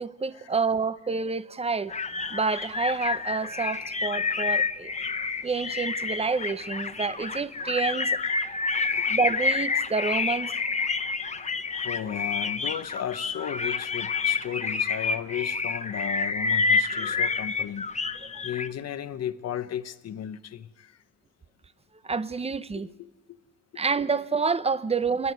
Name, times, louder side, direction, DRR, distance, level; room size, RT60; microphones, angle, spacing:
voice 1, 0.0-1.9 2.3-4.9 5.4-8.2 9.1-10.5 18.3-18.4 22.0-22.9 23.8-25.3, right 4 dB, 20° right, 0.7 m, -28 dB
sound 1, 1.9-18.7, left 4 dB, 25° left, 0.9 m, -28 dB
voice 2, 8.7-9.1 11.3-11.5 11.8-17.9 18.4-21.0 22.8-23.4, left 10 dB, 55° left, 1.0 m, -35 dB
28.5 x 10.5 x 9.4 m
cardioid pair, 90°, 30 cm